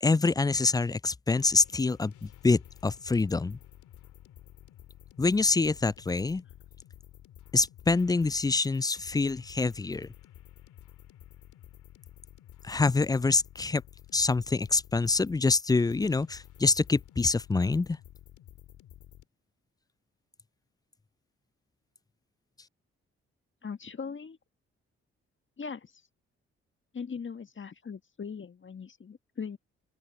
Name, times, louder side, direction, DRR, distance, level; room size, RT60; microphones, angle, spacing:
voice 1, 0.0-3.6 5.2-6.4 7.5-10.1 12.6-13.8 14.1-18.0, left 3 dB, 15° left, 0.4 m, -26 dB
sound 1, 1.4-19.3, left 12 dB, 75° left, 2.7 m, -52 dB
voice 2, 23.6-24.4 25.6-25.9 26.9-29.6, left 6 dB, 40° left, 1.7 m, -39 dB
open air
hypercardioid pair, 45°, 30 cm